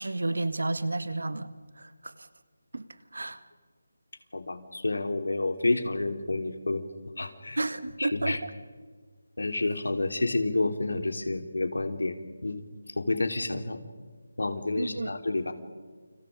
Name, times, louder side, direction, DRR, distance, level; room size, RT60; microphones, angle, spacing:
voice 1, 0.0-1.5 1.8-2.3 2.7-2.8 3.1-3.4 7.6-8.5 14.8-15.1, right 2 dB, 90° right, 12 dB, 1.8 m, -31 dB
voice 2, 4.3-6.8 7.2-7.6 8.0-8.4 9.4-12.6 13.0-13.8 14.4-15.5, left 2 dB, 80° left, 7 dB, 3.4 m, -29 dB
29.5 x 26.5 x 5.2 m, 1.5 s
figure-of-eight pair, 180°, 0 cm